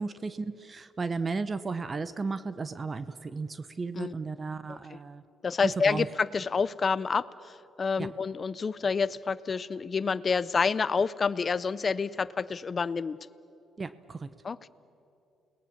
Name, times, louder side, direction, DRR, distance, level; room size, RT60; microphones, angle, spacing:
voice 1, 0.0-5.2 5.6-6.1 8.0-8.1 13.8-14.3, right 4 dB, 35° right, 14 dB, 0.8 m, -34 dB
voice 2, 4.7-5.0 5.4-13.2 14.4-14.7, left 5 dB, 40° left, 16 dB, 0.5 m, -28 dB
29.0 x 19.0 x 7.3 m, 2.8 s
cardioid pair, 90°, 0 cm